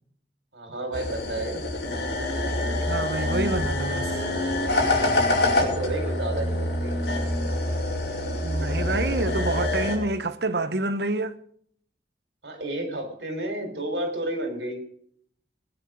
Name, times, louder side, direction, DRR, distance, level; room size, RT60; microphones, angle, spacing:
voice 1, 0.5-1.6 5.3-7.0 12.4-14.8, right 1 dB, 90° right, 4.1 m, -31 dB
sound 1, 0.9-10.0, left 1 dB, 70° left, 4.7 m, -26 dB
voice 2, 2.9-4.2 8.4-11.4, right 2 dB, 70° right, 1.0 m, -28 dB
20.5 x 9.6 x 5.1 m
head